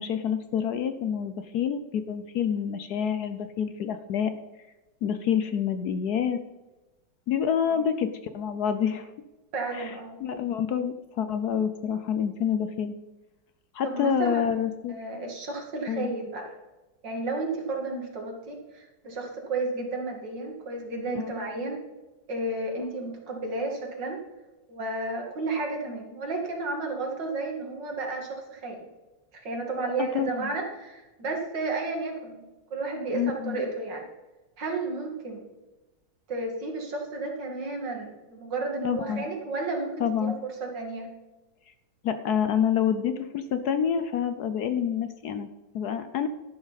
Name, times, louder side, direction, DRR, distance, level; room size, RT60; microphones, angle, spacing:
voice 1, 0.0-4.3 5.0-6.4 7.3-9.1 9.7-9.9 10.2-12.9 13.7-15.0 15.9-16.1 21.1-21.3 30.1-30.5 33.1-33.7 38.8-39.2 40.0-40.3 42.0-45.5 45.7-46.3, left 8 dB, 65° left, 10 dB, 1.1 m, -27 dB
voice 2, 9.5-10.1 13.8-14.5 14.9-16.6 17.0-21.8 22.3-24.2 24.7-28.9 29.3-32.4 32.7-34.0 34.6-35.4 36.3-41.1, right 3 dB, 65° right, 1 dB, 2.8 m, -32 dB
13.0 x 11.5 x 4.1 m, 1.1 s
omnidirectional pair, 2.1 m